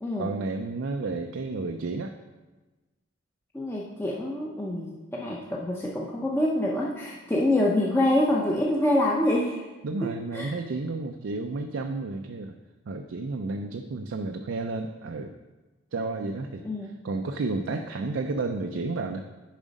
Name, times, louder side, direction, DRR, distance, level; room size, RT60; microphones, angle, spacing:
voice 1, 0.2-2.2 9.8-12.6 12.9-15.3 15.9-19.2, right 3 dB, 80° right, 5 dB, 0.4 m, -31 dB
voice 2, 3.5-9.6 10.0-10.5 16.6-17.0, left 1 dB, 10° left, -3 dB, 0.6 m, -26 dB
7.3 x 5.0 x 5.2 m, 1.2 s
head